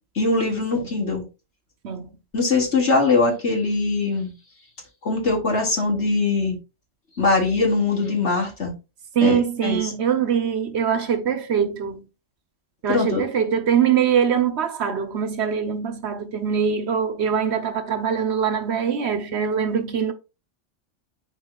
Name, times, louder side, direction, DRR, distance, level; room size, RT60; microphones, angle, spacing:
voice 1, 0.2-1.2 2.3-4.3 5.0-6.6 7.2-8.7 9.2-9.9 12.9-13.2, left 3 dB, 65° left, 2.3 m, -21 dB
voice 2, 9.1-12.0 12.8-20.1, right 7 dB, 65° right, 1.1 m, -23 dB
11.0 x 4.1 x 2.3 m
omnidirectional pair, 1.3 m